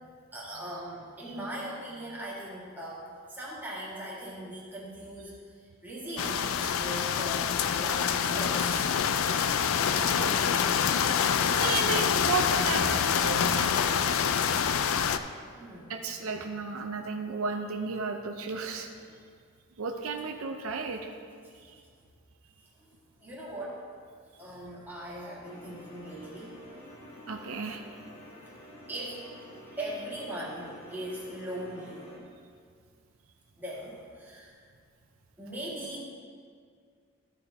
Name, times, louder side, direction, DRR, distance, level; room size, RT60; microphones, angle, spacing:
voice 1, 0.3-8.9 10.0-10.5 15.5-16.0 19.0-19.2 22.8-22.9 23.2-23.8 24.4-26.6 28.9-29.3 29.8-32.0 33.6-34.6 35.4-36.0, right 1 dB, 10° right, -6 dB, 1.7 m, -40 dB
sound 1, 6.2-15.2, left 7 dB, 70° left, 0.4 m, -26 dB
voice 2, 11.4-14.0 14.4-14.7 15.9-18.9 19.8-21.0 27.3-27.8, right 4 dB, 75° right, 4 dB, 0.6 m, -34 dB
sound 2, 25.4-32.2, equal, 45° left, 2.3 m, -49 dB
13.0 x 5.1 x 4.2 m, 2.1 s
head